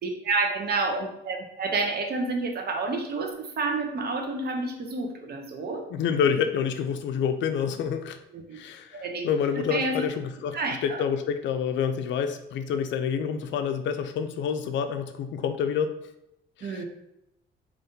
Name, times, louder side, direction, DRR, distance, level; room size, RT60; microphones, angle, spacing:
voice 1, 0.0-5.8 8.3-8.6 8.9-9.3 9.5-10.1 10.5-11.1 16.6-16.8, right 3 dB, 55° right, 3 dB, 0.7 m, -29 dB
voice 2, 5.9-8.2 8.5-10.6 10.8-15.9 16.6-16.8, left 7 dB, 70° left, 8 dB, 0.4 m, -28 dB
3.5 x 2.5 x 2.7 m, 0.85 s
cardioid pair, 90°, 20 cm